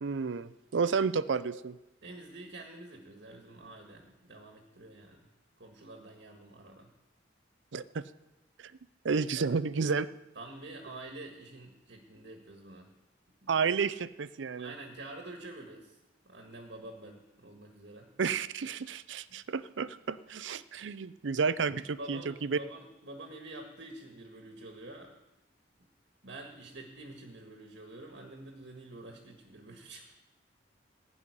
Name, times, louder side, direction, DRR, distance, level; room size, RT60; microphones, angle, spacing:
voice 1, 0.0-1.8 7.7-8.0 8.6-8.7 9.0-10.1 13.5-14.7 18.2-22.6, right 5 dB, 85° right, 16 dB, 0.5 m, -31 dB
voice 2, 2.0-5.3 5.6-6.9 10.3-12.9 13.4-13.6 14.6-16.0 16.2-18.1 19.3-19.4 22.0-25.2 26.2-30.1, right 2 dB, 65° right, 2 dB, 1.7 m, -47 dB
16.0 x 5.7 x 9.8 m, 0.98 s
head